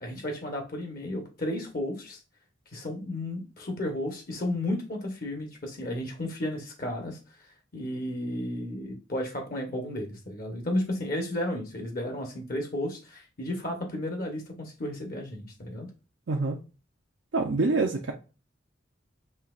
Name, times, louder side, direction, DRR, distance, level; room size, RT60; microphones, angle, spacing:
voice 1, 0.0-2.2 2.7-7.2 7.7-15.9, left 1 dB, 50° left, 3 dB, 1.0 m, -33 dB
voice 2, 16.3-16.6 17.3-18.1, right 3 dB, 75° right, 2 dB, 0.6 m, -26 dB
5.6 x 2.9 x 2.4 m, 0.33 s
head